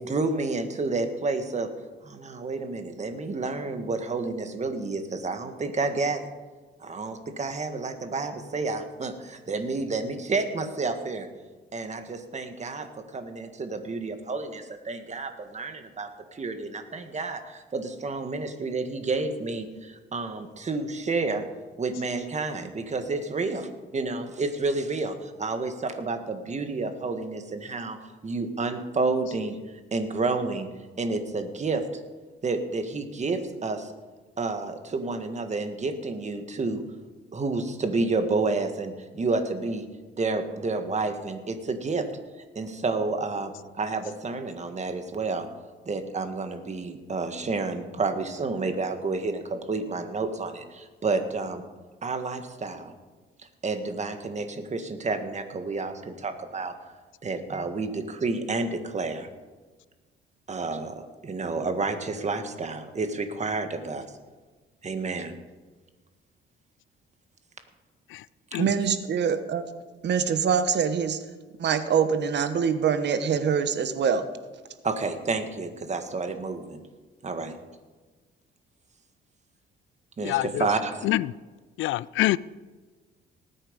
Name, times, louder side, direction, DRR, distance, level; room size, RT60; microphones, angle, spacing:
voice 1, 0.1-1.7 2.0-6.3 6.8-11.3 11.7-21.4 21.8-29.6 29.9-30.7 31.0-32.0 32.4-33.9 34.4-36.8 37.3-39.9 40.2-42.1 42.5-45.5 45.8-51.6 52.0-52.9 53.6-56.7 57.2-59.3 60.5-64.1 64.8-65.4 74.8-76.8 77.2-77.6 80.2-81.0, right 3 dB, 35° right, 7 dB, 1.7 m, -30 dB
voice 2, 68.6-69.6 70.0-71.2 71.6-74.2, right 7 dB, 60° right, 10 dB, 1.2 m, -24 dB
voice 3, 80.2-80.7 81.0-81.3 81.8-82.4, left 16 dB, 80° left, 21 dB, 0.4 m, -26 dB
19.0 x 8.8 x 5.3 m, 1.3 s
cardioid pair, 90°, 20 cm